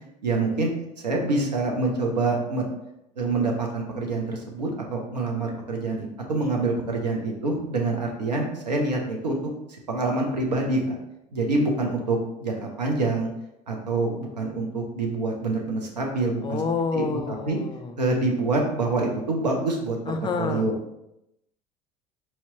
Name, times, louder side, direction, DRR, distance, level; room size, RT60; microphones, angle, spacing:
voice 1, 0.2-0.7 1.0-2.6 3.2-9.4 9.9-11.0 11.3-13.3 13.7-16.6 16.9-17.6 18.0-20.7, right 3 dB, 90° right, 0 dB, 0.7 m, -26 dB
voice 2, 16.4-17.9 20.1-20.7, left 4 dB, 25° left, 7 dB, 0.4 m, -28 dB
4.4 x 2.9 x 2.8 m, 0.84 s
figure-of-eight pair, 65°, 21 cm